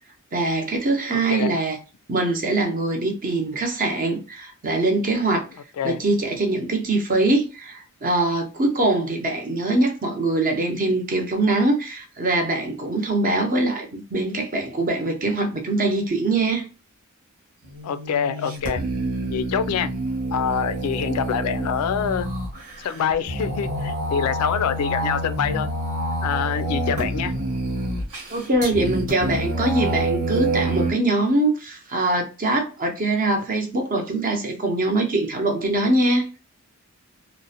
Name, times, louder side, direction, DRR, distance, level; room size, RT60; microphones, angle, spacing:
voice 1, 0.3-1.8 2.1-5.4 5.8-16.7 28.3-36.3, right 2 dB, 40° right, 0.7 m, -23 dB
voice 2, 1.1-1.5 5.8-6.0 17.8-18.8 19.3-19.9 20.3-22.3 22.8-25.7 26.2-27.3, left 7 dB, 75° left, 0.3 m, -25 dB
sound 1, 17.6-30.9, right 1 dB, 80° right, 1.2 m, -27 dB
2.5 x 2.0 x 2.7 m
head